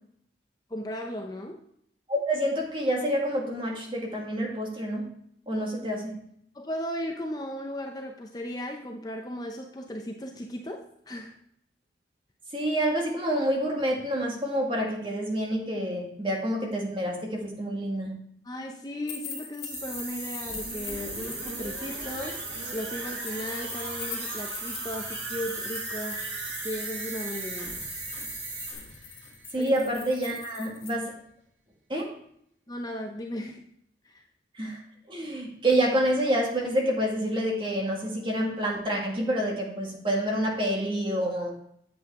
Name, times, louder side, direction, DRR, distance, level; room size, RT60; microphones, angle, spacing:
voice 1, 0.7-1.6 6.5-11.3 18.4-26.2 26.6-27.8 29.6-29.7 32.7-33.6 34.0-34.2, equal, 20° left, 2 dB, 0.6 m, -36 dB
voice 2, 2.1-5.1 5.5-6.2 12.5-18.1 29.5-31.1 31.9-32.1 34.5-34.8 35.1-41.5, right 1 dB, 30° right, -1 dB, 2.0 m, -28 dB
sound 1, 19.1-21.8 23.2-30.9, left 7 dB, 55° left, 1.8 m, -43 dB
sound 2, 19.7-28.7, right 2 dB, 60° right, 3.7 m, -38 dB
sound 3, 20.4-30.2 30.5-30.6, right 3 dB, 90° right, 1.8 m, -41 dB
8.6 x 7.9 x 3.6 m, 0.70 s
head